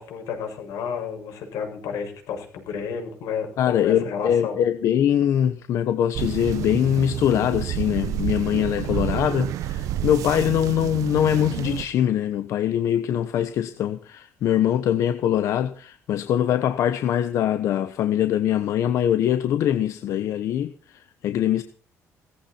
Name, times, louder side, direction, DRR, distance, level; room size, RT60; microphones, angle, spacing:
voice 1, 0.0-4.6, left 6 dB, 90° left, 6.5 m, -31 dB
voice 2, 3.6-21.6, left 10 dB, 65° left, 1.1 m, -23 dB
sound 1, 6.1-11.8, right 12 dB, 80° right, 1.0 m, -29 dB
18.0 x 14.5 x 4.4 m
cardioid pair, 160°, 6 cm